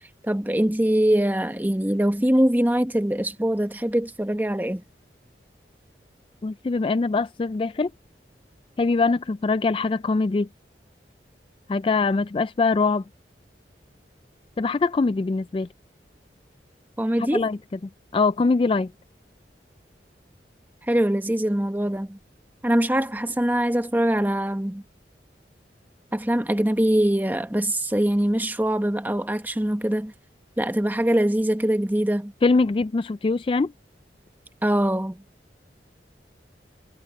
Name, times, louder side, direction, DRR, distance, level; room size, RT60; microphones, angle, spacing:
voice 1, 0.2-4.8 17.0-17.5 20.9-22.2 22.6-24.8 26.1-30.1 30.6-32.3 34.6-35.2, right 1 dB, 10° right, 1.0 m, -23 dB
voice 2, 6.4-7.9 8.8-10.5 11.7-13.0 14.6-15.7 17.3-17.6 18.1-18.9 32.4-33.7, left 3 dB, 30° left, 0.3 m, -22 dB
head